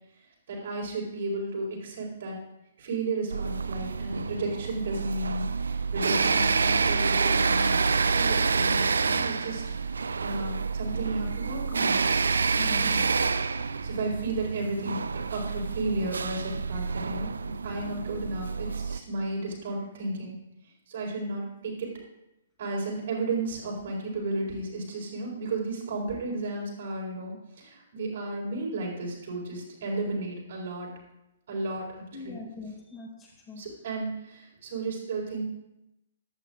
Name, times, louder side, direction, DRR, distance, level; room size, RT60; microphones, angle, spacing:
voice 1, 0.5-2.4 2.8-9.6 9.9-12.0 12.8-13.0 13.8-15.0 15.3-20.4 20.9-21.9 22.6-30.9 31.5-32.4 33.6-35.4, right 2 dB, 55° right, -2 dB, 4.2 m, -33 dB
sound 1, 3.3-19.0, right 4 dB, 70° right, 0.5 m, -28 dB
voice 2, 12.6-13.1 32.1-33.6, left 4 dB, 25° left, -4 dB, 5.0 m, -42 dB
15.0 x 12.5 x 2.5 m, 0.88 s
figure-of-eight pair, 120°, 0 cm